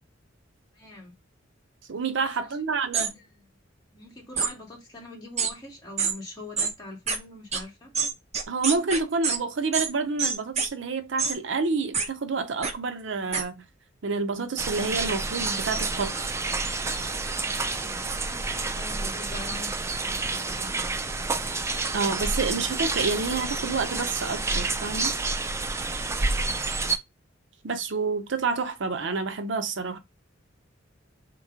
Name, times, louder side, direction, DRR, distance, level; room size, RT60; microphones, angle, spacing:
voice 1, 0.7-1.1 2.1-2.5 3.1-3.3 3.9-7.9 17.8-19.7 20.0-20.9 25.9-26.2, left 2 dB, 20° left, 1.9 m, -43 dB
voice 2, 1.9-3.1 8.5-13.6 14.0-16.3 21.9-25.2 27.6-30.0, right 4 dB, 65° right, 0.6 m, -28 dB
sound 1, 2.9-3.1 4.4-4.5 5.4-5.5 6.0-6.1 6.6-6.7 7.1-7.2 7.5-7.6 7.9-9.4 9.7-9.9 10.2-10.7 11.2-11.4 11.9-12.1 12.6-12.7 13.3-13.4, right 5 dB, 35° right, 0.8 m, -26 dB
sound 2, 14.6-27.0, right 3 dB, 15° right, 0.3 m, -29 dB
3.6 x 3.0 x 4.8 m
head